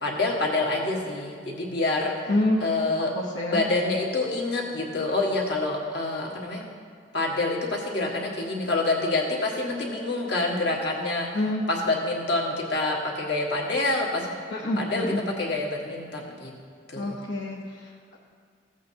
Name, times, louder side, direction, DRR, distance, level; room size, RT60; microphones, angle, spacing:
voice 1, 0.0-2.3 2.6-3.1 3.5-6.6 7.1-11.3 11.7-14.3 14.8-15.1 15.4-16.5 16.9-17.2, left 2 dB, 60° left, -1 dB, 1.6 m, -27 dB
voice 2, 3.1-3.7 11.3-11.6 14.5-15.2 16.9-18.2, left 1 dB, 80° left, -4 dB, 0.9 m, -27 dB
15.0 x 8.3 x 2.8 m, 2.1 s
head